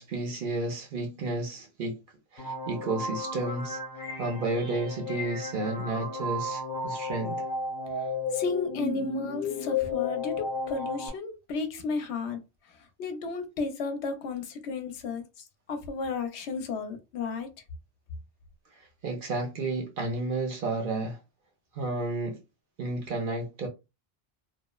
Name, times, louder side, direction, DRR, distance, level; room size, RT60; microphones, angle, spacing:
voice 1, 0.0-2.0 2.3-3.8 4.2-7.5 19.0-21.2 21.7-22.4 22.8-23.7, right 2 dB, 55° right, 0.7 m, -31 dB
sound 1, 2.4-11.1, left 3 dB, 50° left, 1.0 m, -33 dB
voice 2, 8.3-12.4 13.0-15.2 15.7-17.5, left 4 dB, 80° left, 0.9 m, -33 dB
2.7 x 2.0 x 2.2 m
omnidirectional pair, 1.2 m